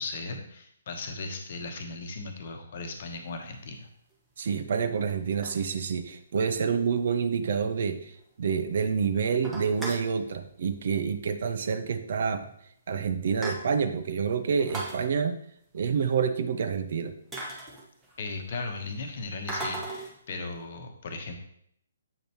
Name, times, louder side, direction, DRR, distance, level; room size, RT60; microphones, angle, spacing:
voice 1, 0.0-3.9 18.2-21.3, left 3 dB, 45° left, 5 dB, 1.0 m, -37 dB
sound 1, 3.2-3.3 4.1-4.2 5.1-6.1 6.5-6.6 6.8-6.9 7.3-7.4 7.7-7.8 8.1-8.6 8.9-9.0 9.3-10.1 11.2-11.5 11.8-11.9 12.6-12.7 13.0-14.0 14.5-15.0 16.7-16.8 17.3-18.3 19.5-20.2, right 2 dB, 10° right, 1.2 m, -37 dB
voice 2, 4.4-8.1 8.4-12.5 12.9-15.4 15.7-17.1, right 6 dB, 50° right, 9 dB, 0.6 m, -28 dB
7.6 x 5.1 x 3.0 m, 0.70 s
figure-of-eight pair, 130°, 0 cm